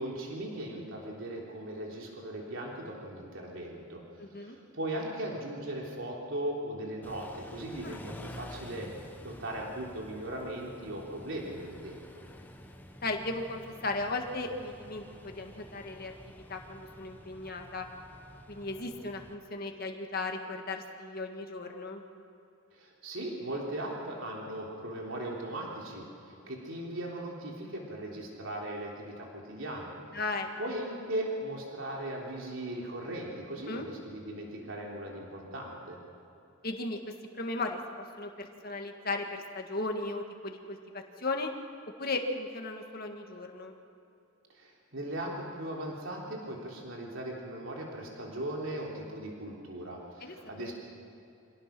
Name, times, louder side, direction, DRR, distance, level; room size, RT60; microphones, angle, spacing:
voice 1, 0.0-4.0 4.4-8.9 9.2-12.0 22.7-29.9 30.6-36.0 44.5-50.7, right 1 dB, 70° right, -2 dB, 3.6 m, -38 dB
voice 2, 4.2-4.6 7.8-8.0 13.0-17.9 18.5-22.0 30.1-30.5 33.7-33.9 36.6-37.0 37.3-37.8 38.2-41.5 42.0-43.7 50.2-50.7, left 2 dB, 45° left, 3 dB, 1.7 m, -36 dB
Car / Idling / Accelerating revving vroom, 7.0-19.3, left 1 dB, 10° left, 1.2 m, -49 dB
25.5 x 17.5 x 6.0 m, 2.8 s
head